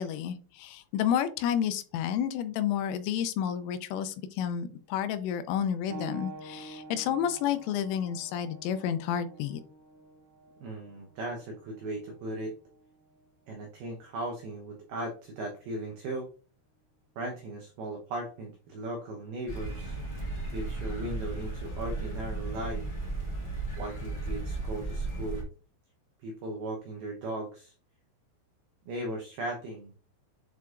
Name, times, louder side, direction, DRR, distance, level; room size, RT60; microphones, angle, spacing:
voice 1, 0.0-9.6, left 9 dB, 85° left, 11 dB, 3.1 m, -30 dB
sound 1, 5.9-16.1 17.1-17.2 17.9-18.0, right 3 dB, 65° right, 2.7 m, -49 dB
voice 2, 10.6-12.5 13.5-16.3 17.2-20.0 20.5-22.9 23.8-25.4 26.2-27.7 28.9-29.9, right 1 dB, 85° right, 1 dB, 2.2 m, -37 dB
sound 2, 19.5-25.4, right 2 dB, 10° left, 1.9 m, -35 dB
8.0 x 4.7 x 2.5 m, 0.38 s
omnidirectional pair, 5.8 m